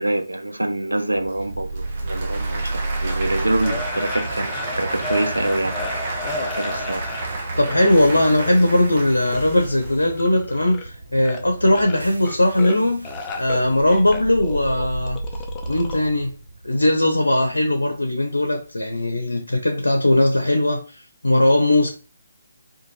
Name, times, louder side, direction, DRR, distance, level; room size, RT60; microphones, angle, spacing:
voice 1, 0.0-7.1, right 1 dB, 80° right, 0.4 m, -26 dB
Applause / Crowd, 1.1-9.9, right 3 dB, 35° right, 0.6 m, -32 dB
sound 1, 1.4-19.5, right 2 dB, 60° right, 1.2 m, -33 dB
sound 2, 3.6-7.4 7.7-8.9 9.3-10.9 11.1-11.4 11.7-12.8 13.0-16.0, left 4 dB, 15° left, 0.4 m, -34 dB
voice 2, 7.6-15.2 15.7-16.4 16.6-21.9, left 1 dB, 75° left, 0.6 m, -19 dB
2.6 x 2.3 x 3.0 m
figure-of-eight pair, 145°, 0 cm